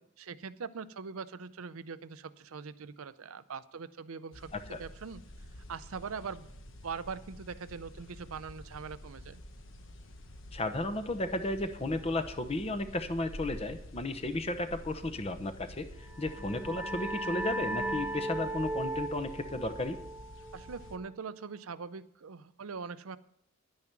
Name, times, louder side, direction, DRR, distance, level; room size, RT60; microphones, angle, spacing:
voice 1, 0.2-4.5 4.8-5.2 5.7-6.5 6.8-9.4 20.5-23.2, right 5 dB, 80° right, 14 dB, 0.6 m, -42 dB
sound 1, 4.3-21.0, left 1 dB, 60° left, 1.1 m, -49 dB
voice 2, 10.5-20.0, left 2 dB, 30° left, 10 dB, 0.9 m, -34 dB
sound 2, 16.0-21.4, right 1 dB, 10° right, 1.1 m, -37 dB
10.5 x 9.6 x 6.0 m, 0.73 s
head